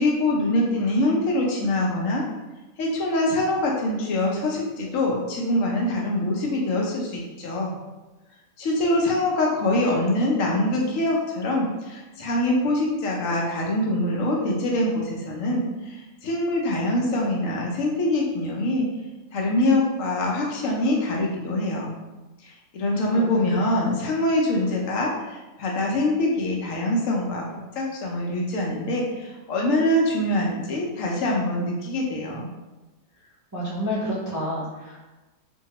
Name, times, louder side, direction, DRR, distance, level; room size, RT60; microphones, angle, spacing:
voice 1, 0.0-2.2 2.8-7.7 8.6-18.9 19.3-21.9 22.4-27.4 27.8-32.4, left 1 dB, 75° left, -2 dB, 0.9 m, -24 dB
voice 2, 33.5-35.1, equal, 25° right, -10 dB, 0.4 m, -29 dB
2.7 x 2.2 x 2.8 m, 1.1 s
omnidirectional pair, 1.5 m